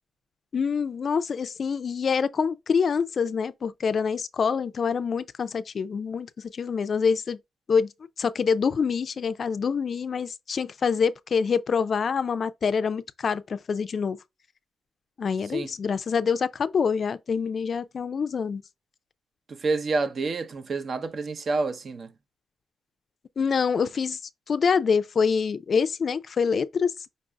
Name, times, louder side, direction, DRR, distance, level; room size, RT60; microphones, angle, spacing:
voice 1, 0.5-7.4 7.7-7.9 8.2-14.2 15.2-18.6 23.4-24.2 24.5-26.9, left 6 dB, 50° left, 0.4 m, -26 dB
voice 2, 19.5-22.1, right 3 dB, 50° right, 0.6 m, -28 dB
5.2 x 2.5 x 3.3 m
cardioid pair, 110°, 0 cm